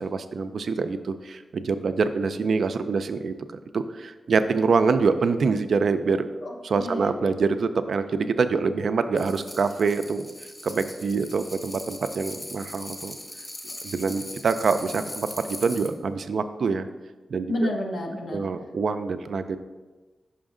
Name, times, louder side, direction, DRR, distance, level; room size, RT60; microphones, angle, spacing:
voice 1, 0.0-3.3 3.7-6.3 6.6-10.3 10.6-13.2 13.8-16.9 17.3-17.7 18.3-19.6, right 4 dB, 75° right, 10 dB, 0.4 m, -25 dB
voice 2, 6.4-7.2 17.5-18.4, left 1 dB, 75° left, 1 dB, 0.9 m, -30 dB
sound 1, 9.2-15.9, left 1 dB, 40° left, 1.1 m, -40 dB
5.6 x 5.2 x 3.7 m, 1.2 s
cardioid pair, 55°, 0 cm